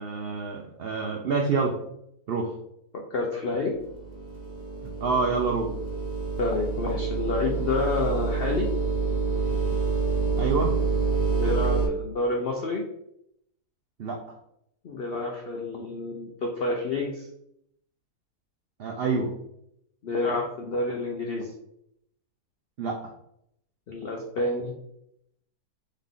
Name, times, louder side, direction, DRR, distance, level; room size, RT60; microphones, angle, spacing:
voice 1, 0.0-1.7 2.3-2.5 4.8-5.7 10.4-10.7 14.0-14.2 18.8-19.3 22.8-23.0, right 4 dB, 80° right, 1 dB, 0.5 m, -27 dB
voice 2, 2.9-3.8 6.4-8.7 11.3-12.8 14.8-17.3 20.0-21.5 23.9-24.7, left 2 dB, 75° left, 0 dB, 0.5 m, -29 dB
sound 1, 3.7-11.9, right 4 dB, 30° right, 0.9 m, -27 dB
3.8 x 3.2 x 3.5 m, 0.77 s
omnidirectional pair, 1.7 m